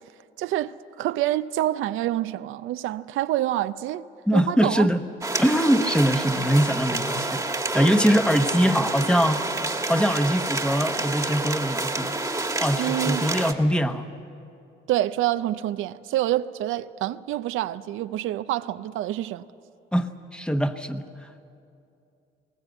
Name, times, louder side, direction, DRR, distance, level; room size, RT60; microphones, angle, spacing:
voice 1, 0.4-4.0 4.3-4.9 12.8-13.3 14.9-19.4, right 14 dB, 85° right, 0.5 m, -27 dB
voice 2, 4.3-5.0 5.4-7.4 7.7-9.5 9.9-12.2 12.6-14.1 19.9-21.1, equal, 5° left, 1.0 m, -22 dB
sound 1, 5.2-13.5, right 2 dB, 15° right, 1.4 m, -28 dB
20.5 x 18.5 x 7.9 m
cardioid pair, 90°, 20 cm